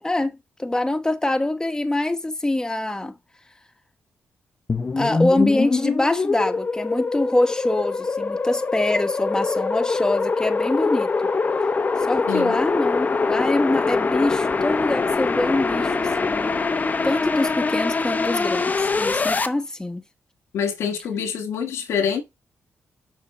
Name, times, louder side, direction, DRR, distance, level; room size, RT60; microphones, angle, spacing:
voice 1, 0.0-3.1 5.0-11.1 12.1-16.5 17.0-18.6 19.0-20.0, left 2 dB, 15° left, 1.3 m, -24 dB
sound 1, 4.7-19.5, left 4 dB, 35° left, 0.9 m, -23 dB
voice 2, 12.3-12.6 20.5-22.2, left 7 dB, 85° left, 1.6 m, -25 dB
7.0 x 4.9 x 4.2 m
cardioid pair, 60°, 5 cm